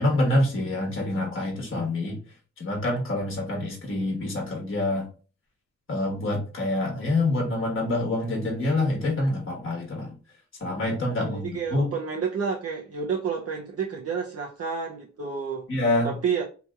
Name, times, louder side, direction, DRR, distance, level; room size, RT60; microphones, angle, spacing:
voice 1, 0.0-2.2 2.6-5.1 5.9-10.1 10.6-11.9 15.7-16.1, left 2 dB, 40° left, 1.2 m, -26 dB
voice 2, 11.2-15.7 16.0-16.4, right 6 dB, 50° right, 0.6 m, -30 dB
2.9 x 2.7 x 2.3 m
cardioid pair, 60°, 31 cm